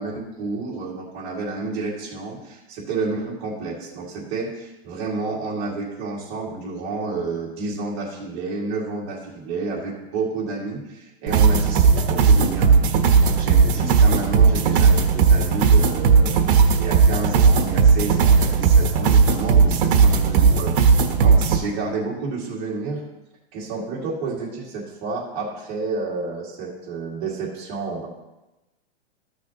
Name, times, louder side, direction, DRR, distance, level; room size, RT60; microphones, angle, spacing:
voice 1, 0.0-23.0 23.5-28.1, right 3 dB, 30° right, -5 dB, 2.1 m, -30 dB
sound 1, 11.3-21.6, right 5 dB, 60° right, 1.1 m, -16 dB
14.0 x 6.2 x 2.9 m, 1.0 s
supercardioid pair, 170°, 31 cm